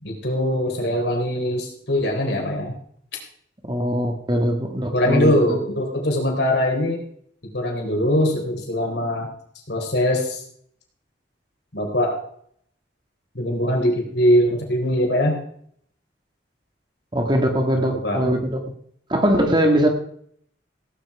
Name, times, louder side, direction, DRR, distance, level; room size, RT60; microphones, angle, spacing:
voice 1, 0.0-2.8 4.9-7.0 7.5-9.3 9.7-10.4 11.7-12.2 13.3-15.4 18.0-18.2, left 1 dB, 65° left, 1 dB, 4.1 m, -22 dB
voice 2, 3.6-5.6 17.1-18.6 19.1-19.9, equal, 25° right, 3 dB, 1.9 m, -21 dB
17.0 x 9.5 x 4.9 m, 0.63 s
head